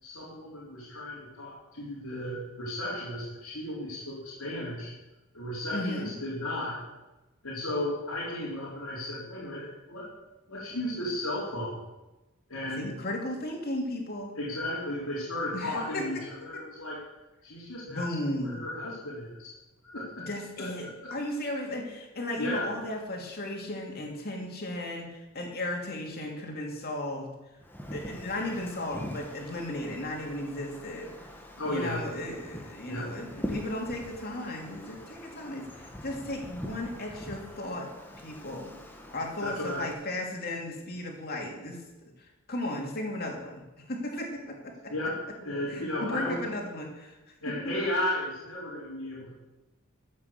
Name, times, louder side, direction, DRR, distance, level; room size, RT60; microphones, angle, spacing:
voice 1, 0.0-4.9 5.3-6.8 7.4-10.1 10.5-11.8 12.5-12.9 14.3-17.0 17.4-19.5 19.8-20.3 20.6-20.7 21.0-21.1 22.4-22.7 31.6-32.0 32.9-33.1 39.4-39.8 44.9-46.4 47.4-49.3, left 1 dB, 90° left, -7 dB, 3.8 m, -34 dB
voice 2, 5.7-6.1 12.8-14.3 15.5-16.1 17.9-18.6 20.2-27.3 27.9-31.1 31.7-37.9 38.2-38.7 39.1-41.8 42.0-42.1 42.5-44.9 45.7-47.2 47.6-47.7, left 1 dB, 45° left, 0 dB, 2.8 m, -35 dB
Wind, 27.6-39.9, equal, 10° left, 1.4 m, -43 dB
13.0 x 8.5 x 6.7 m, 1.0 s
head